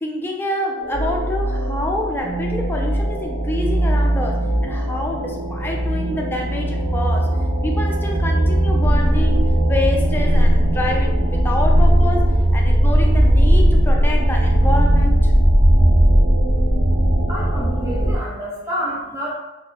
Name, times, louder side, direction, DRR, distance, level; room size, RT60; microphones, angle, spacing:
voice 1, 0.0-7.4 7.6-15.3, left 1 dB, 10° left, 0 dB, 0.3 m, -27 dB
sound 1, 0.8-18.2, right 1 dB, 70° right, 0.7 m, -17 dB
voice 2, 17.3-19.3, equal, 15° right, -7 dB, 0.9 m, -28 dB
4.3 x 2.4 x 2.3 m, 1.0 s
head